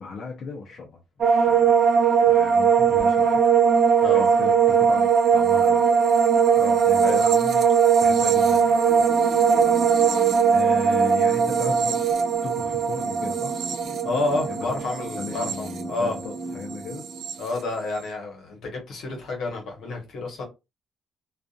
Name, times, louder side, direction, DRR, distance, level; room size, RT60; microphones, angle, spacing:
voice 1, 0.0-1.7 2.3-3.4 4.1-5.8 6.8-7.6 8.0-9.1 9.6-9.8 10.1-12.1 12.4-13.6 14.2-14.8 15.2-17.1, left 4 dB, 60° left, 0.7 m, -37 dB
sound 1, 1.2-16.4 16.7-17.3, right 6 dB, 70° right, 0.5 m, -20 dB
voice 2, 6.6-7.2 14.0-16.2 17.4-20.4, left 2 dB, 75° left, 1.1 m, -29 dB
sound 2, 8.9-17.9, right 3 dB, 20° right, 0.6 m, -38 dB
2.5 x 2.4 x 2.4 m
cardioid pair, 90°, 0 cm